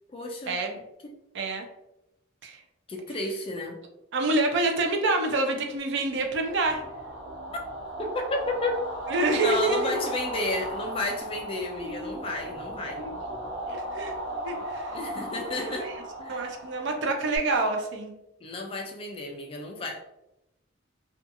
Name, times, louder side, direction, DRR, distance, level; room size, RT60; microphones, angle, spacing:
voice 1, 0.1-0.6 1.0-1.1 2.9-3.8 8.0-8.8 9.4-13.0 14.9-15.9 16.2-16.5 18.4-20.0, left 2 dB, 25° left, 2 dB, 0.3 m, -32 dB
voice 2, 1.3-1.7 2.4-2.6 4.1-6.8 9.1-9.9 11.8-12.2 13.6-14.1 14.4-14.9 15.6-15.9 16.3-18.1, right 2 dB, 55° right, 3 dB, 0.4 m, -27 dB
sound 1, 6.2-17.4, right 1 dB, 85° right, 1.3 m, -36 dB
2.6 x 2.3 x 2.5 m, 0.89 s
head